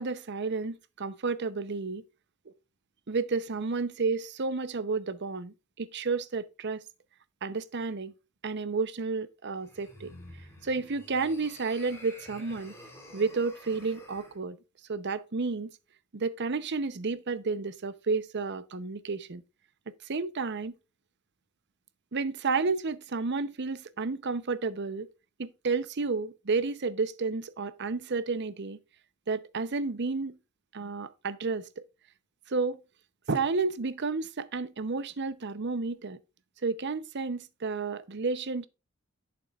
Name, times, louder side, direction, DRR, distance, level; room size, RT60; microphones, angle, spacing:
voice 1, 0.0-2.0 3.1-6.8 7.4-8.1 8.4-10.1 10.6-12.7 13.1-14.6 14.9-15.7 16.1-19.4 20.0-20.7 22.1-25.1 25.4-28.8 29.3-30.4 30.7-31.8 32.5-32.8 33.3-36.2 36.6-38.7, right 4 dB, 55° right, 0.7 m, -31 dB
sound 1, 9.6-14.4, left 1 dB, 15° left, 3.5 m, -50 dB
11.5 x 6.9 x 2.4 m
head